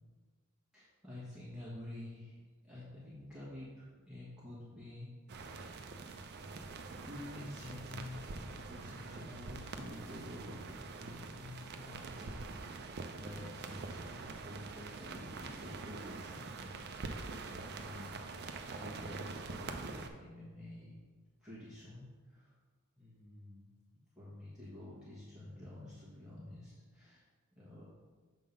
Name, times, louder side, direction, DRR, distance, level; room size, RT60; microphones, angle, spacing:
voice 1, 0.7-2.4 2.6-6.6 7.0-21.0 21.4-22.5 23.0-23.7 24.1-27.2 27.5-27.8, left 1 dB, 5° right, -10 dB, 1.3 m, -50 dB
sound 1, 5.3-20.1, right 3 dB, 50° right, 0.5 m, -45 dB
6.9 x 3.7 x 5.2 m, 1.4 s
head